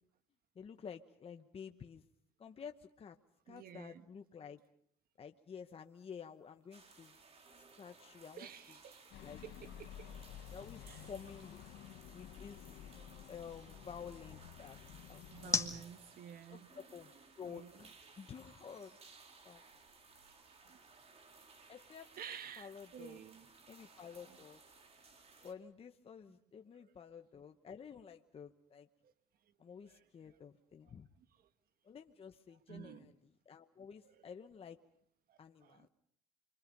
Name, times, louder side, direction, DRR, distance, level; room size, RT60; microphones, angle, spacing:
voice 1, 0.5-2.0 2.4-3.2 3.5-4.6 5.2-7.2 7.5-8.8 9.2-9.4 10.5-11.7 12.1-12.8 13.3-14.8 15.1-15.6 16.5-17.1 17.4-19.0 19.4-19.6 21.7-22.1 22.6-23.2 23.7-24.6 25.4-28.9 29.6-31.1 31.8-33.1 33.4-34.8 35.4-35.9, left 7 dB, 35° left, 1.0 m, -51 dB
voice 2, 3.5-4.1 8.4-9.0 9.4-10.1 10.9-11.0 13.2-13.3 15.3-16.7 17.5-17.8 20.3-20.8 22.2-23.5 29.0-29.1 29.9-30.0 32.7-33.1 34.2-34.3 35.3-35.9, right 9 dB, 60° right, 1.6 m, -52 dB
sound 1, 5.7-20.0, left 3 dB, 15° left, 2.1 m, -48 dB
sound 2, 6.7-25.5, right 4 dB, 40° right, 4.1 m, -60 dB
sound 3, 9.1-15.8, left 10 dB, 85° left, 1.3 m, -52 dB
29.5 x 24.5 x 5.3 m
cardioid pair, 110°, 17 cm